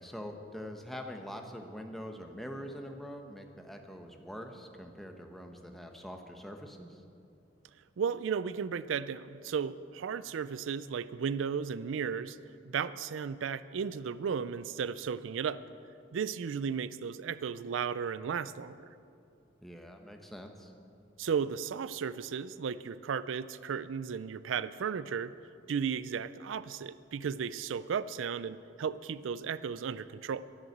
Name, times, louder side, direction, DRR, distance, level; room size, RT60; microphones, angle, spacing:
voice 1, 0.0-7.0 19.6-20.7, equal, ahead, 3 dB, 0.9 m, -44 dB
voice 2, 8.0-12.4 12.7-15.6 16.1-18.9 21.2-25.3 25.7-30.4, right 6 dB, 85° right, 15 dB, 0.4 m, -34 dB
11.0 x 11.0 x 7.9 m, 2.6 s
head